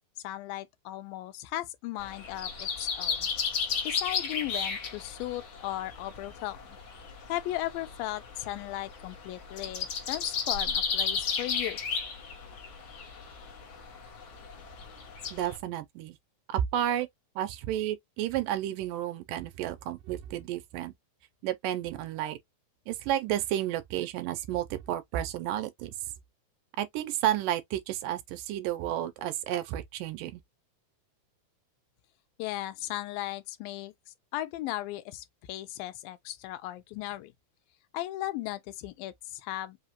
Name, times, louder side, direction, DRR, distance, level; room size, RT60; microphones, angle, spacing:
voice 1, 0.2-3.3 3.8-6.6 7.3-11.8 32.4-33.9 34.3-37.3 37.9-39.8, left 15 dB, 80° left, 2.4 m, -36 dB
sound 1, 2.0-15.6, left 6 dB, 60° left, 1.3 m, -34 dB
voice 2, 15.3-16.2 16.5-17.1 17.4-20.9 21.4-22.4 22.9-26.0 26.8-30.4, right 12 dB, 80° right, 2.2 m, -31 dB
5.5 x 2.4 x 2.9 m
omnidirectional pair, 4.1 m